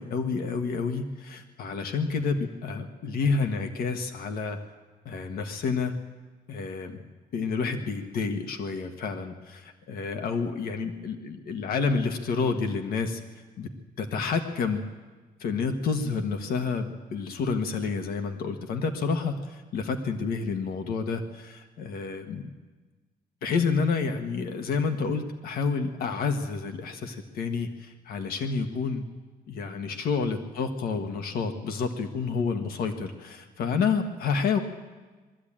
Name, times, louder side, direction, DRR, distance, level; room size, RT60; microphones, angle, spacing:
voice 1, 0.0-4.6 5.0-5.9 6.5-7.0 7.3-13.2 13.6-13.7 14.0-14.8 15.4-22.5 23.4-29.0 29.5-34.6, left 5 dB, 65° left, 6 dB, 1.4 m, -29 dB
21.5 x 13.5 x 8.8 m, 1.3 s
cardioid pair, 175°, 16 cm